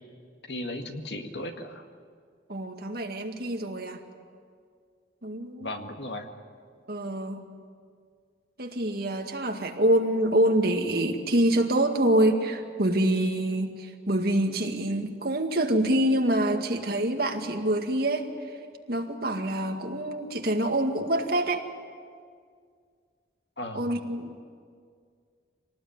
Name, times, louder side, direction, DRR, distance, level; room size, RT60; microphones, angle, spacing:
voice 1, 0.4-1.9 5.6-6.3 23.6-23.9, left 1 dB, 65° left, 4 dB, 2.0 m, -36 dB
voice 2, 2.5-4.0 5.2-5.7 6.9-7.5 8.6-18.6 18.9-21.7 23.7-24.4, right 1 dB, 55° right, 4 dB, 2.1 m, -26 dB
25.5 x 19.0 x 9.5 m, 2.1 s
head